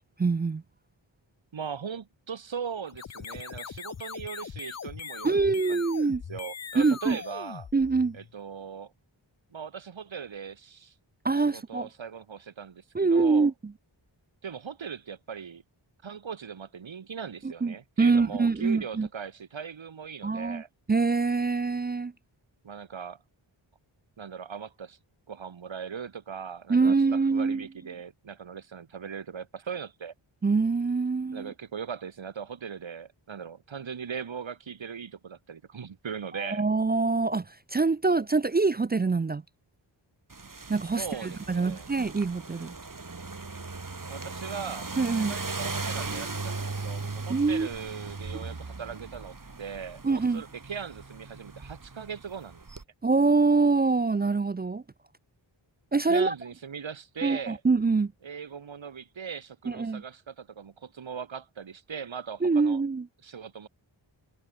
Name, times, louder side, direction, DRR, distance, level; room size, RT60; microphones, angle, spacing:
voice 1, 0.2-0.6 5.2-6.2 6.8-7.2 7.7-8.2 11.2-11.9 12.9-13.5 17.4-19.1 20.2-20.6 20.9-22.1 26.7-27.6 30.4-31.5 36.3-39.4 40.7-42.7 45.0-45.3 47.3-47.7 50.0-50.4 53.0-54.8 55.9-56.3 57.2-58.1 59.7-60.0 62.4-63.1, right 4 dB, 20° right, 0.4 m, -25 dB
voice 2, 1.5-5.4 5.7-7.7 8.1-8.9 9.5-10.9 11.4-13.5 14.4-15.6 16.0-20.7 22.6-23.2 24.2-25.0 25.3-30.1 31.3-36.6 41.0-41.9 44.1-44.9 45.3-52.6 56.1-57.6 58.2-62.8 63.2-63.7, right 6 dB, 70° right, 1.5 m, -39 dB
sound 1, 2.9-8.3, left 7 dB, 35° left, 0.5 m, -41 dB
sound 2, 40.3-52.8, right 3 dB, 40° right, 2.8 m, -38 dB
wide cardioid pair, 60°, 48 cm